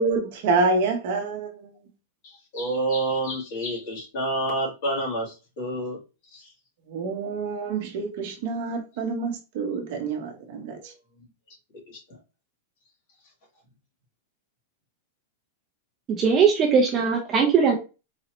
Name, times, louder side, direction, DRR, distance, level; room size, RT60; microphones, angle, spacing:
voice 1, 0.0-1.7 6.9-10.8, right 3 dB, 45° right, 0.8 m, -27 dB
voice 2, 2.2-6.0 6.3-6.5 11.9-12.2, right 1 dB, 45° left, 1.9 m, -29 dB
voice 3, 16.1-17.7, right 6 dB, 20° right, 0.5 m, -20 dB
4.0 x 2.7 x 3.0 m
supercardioid pair, 175°, 0 cm